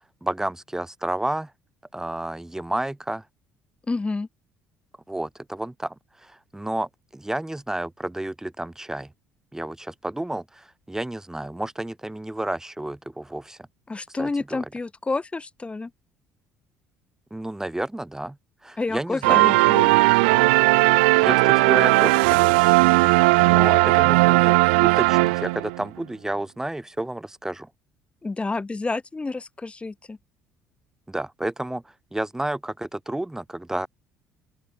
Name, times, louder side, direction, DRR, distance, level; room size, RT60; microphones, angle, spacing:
voice 1, 0.2-1.5 1.9-3.2 5.1-5.9 6.2-9.1 9.5-13.6 14.2-14.7 17.3-18.4 18.6-19.6 21.2-22.7 23.1-27.7 31.1-31.8 32.1-33.9, right 1 dB, 10° right, 7.5 m, -31 dB
voice 2, 3.9-4.3 13.9-15.9 18.8-19.9 28.2-30.2, left 3 dB, 20° left, 2.6 m, -29 dB
sound 1, 19.2-25.8, right 26 dB, 65° right, 1.0 m, -17 dB
open air
figure-of-eight pair, 55°, 6 cm